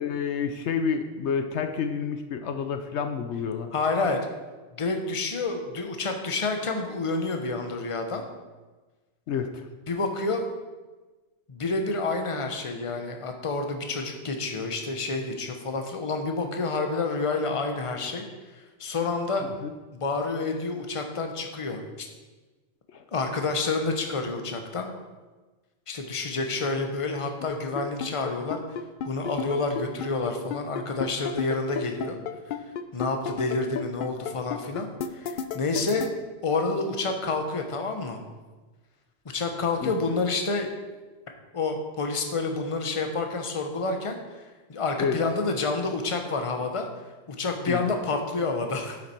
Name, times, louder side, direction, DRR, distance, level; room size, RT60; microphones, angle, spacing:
voice 1, 0.0-3.7 9.3-9.6 19.6-19.7 22.9-23.0 39.8-39.9 45.0-45.2 47.7-48.0, left 6 dB, 70° left, 7 dB, 1.0 m, -29 dB
voice 2, 3.7-4.2 4.8-8.2 9.9-10.4 11.5-18.2 18.8-19.5 19.9-22.1 23.1-24.9 25.9-28.6 29.0-32.2 32.9-36.1 36.4-38.2 39.3-40.7 41.5-44.2 44.7-46.9 47.3-49.0, left 3 dB, 30° left, 4 dB, 1.0 m, -29 dB
sound 1, 27.4-36.1, left 7 dB, 55° left, 0.6 m, -31 dB
9.6 x 7.7 x 4.4 m, 1.2 s
omnidirectional pair, 1.2 m